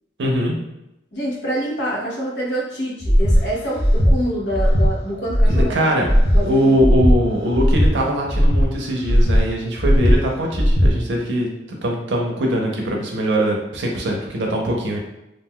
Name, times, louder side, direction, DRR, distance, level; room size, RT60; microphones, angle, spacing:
voice 1, 0.2-0.6 5.4-6.1 6.4-15.0, equal, 80° right, 0 dB, 0.6 m, -21 dB
voice 2, 1.1-6.0 6.3-6.8, equal, 75° left, -3 dB, 0.9 m, -26 dB
Breathing, 3.0-3.4 3.8-4.1 4.5-4.9 5.3-5.6 6.0-6.4 6.8-7.1 7.5-7.9 8.3-8.6 9.0-9.4 9.8-10.1 10.5-10.9, equal, 35° left, 0.6 m, -16 dB
2.5 x 2.2 x 3.6 m, 0.89 s
head